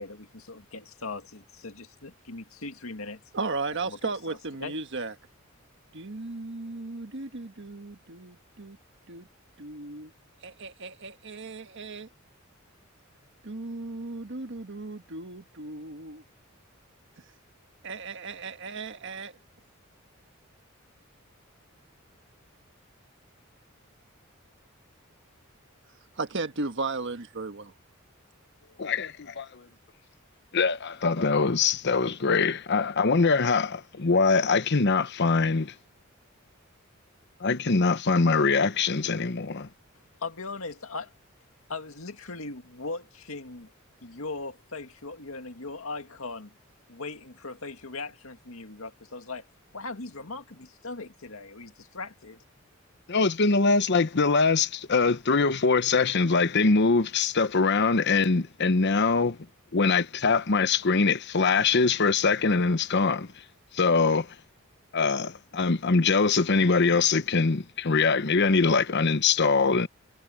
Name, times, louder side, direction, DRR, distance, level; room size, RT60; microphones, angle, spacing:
voice 1, 0.0-3.2 3.8-4.8 40.2-41.1 41.7-43.7 44.0-46.6 46.9-49.5 49.7-52.4, left 3 dB, 85° left, 2.1 m, -39 dB
voice 2, 3.3-5.1 5.9-8.8 9.1-9.3 9.6-10.1 10.4-12.1 13.4-16.2 17.8-19.3 26.2-27.7, right 3 dB, 60° right, 1.5 m, -35 dB
voice 3, 28.8-29.6 30.5-35.7 37.4-39.7 53.1-59.4 59.7-63.3 63.7-64.3 64.9-69.9, left 4 dB, 55° left, 0.9 m, -23 dB
head